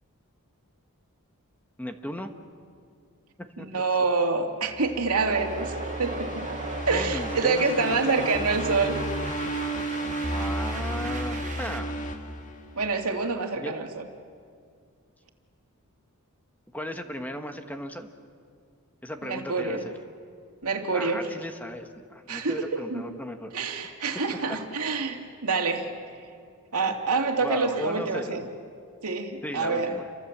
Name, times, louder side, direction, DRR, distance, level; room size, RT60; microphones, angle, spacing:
voice 1, 1.8-2.3 3.4-3.7 6.4-6.5 6.8-8.4 10.2-12.0 13.5-13.7 16.7-18.1 19.0-19.9 20.9-23.5 26.9-27.0 27.4-28.4 29.4-30.1, equal, 5° left, 6 dB, 1.3 m, -36 dB
voice 2, 3.6-5.7 6.0-6.3 6.9-9.0 12.8-14.0 19.2-19.8 20.6-21.2 22.3-23.0 23.5-25.9 26.7-28.4 29.0-29.9, right 4 dB, 80° right, 3 dB, 2.4 m, -27 dB
sound 1, 4.7-13.0, right 1 dB, 35° left, 1.9 m, -33 dB
Sweet dreams, 5.2-11.8, right 5 dB, 35° right, 0.9 m, -38 dB
29.5 x 24.5 x 7.4 m, 2.2 s
head